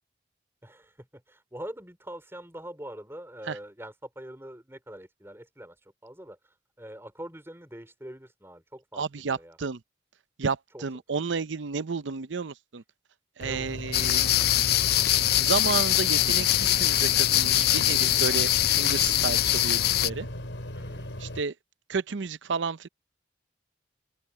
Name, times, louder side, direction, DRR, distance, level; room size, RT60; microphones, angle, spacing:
voice 1, 0.6-5.8 6.0-6.4 6.8-9.6 10.7-10.8 11.1-11.2 13.4-13.8 20.7-21.1, right 1 dB, 15° right, 4.1 m, -43 dB
voice 2, 8.9-9.8 10.4-12.8 13.4-14.3 15.4-20.3 21.2-21.5 21.9-22.9, right 5 dB, 85° right, 0.6 m, -31 dB
sound 1, 13.4-21.4, left 1 dB, 80° left, 4.3 m, -37 dB
sound 2, 13.9-20.1, left 13 dB, 55° left, 0.4 m, -23 dB
open air
head